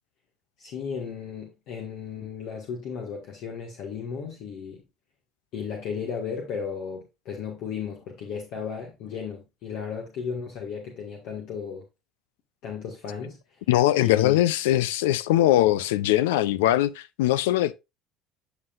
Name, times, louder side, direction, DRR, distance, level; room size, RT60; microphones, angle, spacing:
voice 1, 0.6-4.8 5.5-11.9 12.6-13.6 13.9-14.4, left 6 dB, 65° left, 1.6 m, -35 dB
voice 2, 13.7-17.7, left 14 dB, 85° left, 0.4 m, -21 dB
9.5 x 5.8 x 2.4 m
hypercardioid pair, 70°, 0 cm